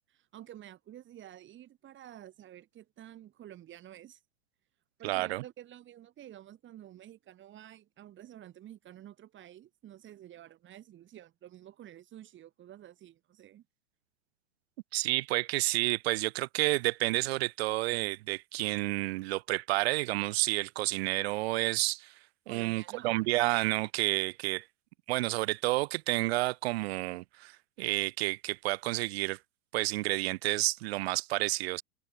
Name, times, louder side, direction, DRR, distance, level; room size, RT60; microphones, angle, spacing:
voice 1, 0.1-4.2 5.0-13.7 22.5-23.5, right 12 dB, 25° right, 3.6 m, -50 dB
voice 2, 5.0-5.4 14.9-22.1 22.5-24.7 25.1-29.4 29.7-31.8, right 20 dB, 45° right, 0.9 m, -30 dB
figure-of-eight pair, 105°, 45 cm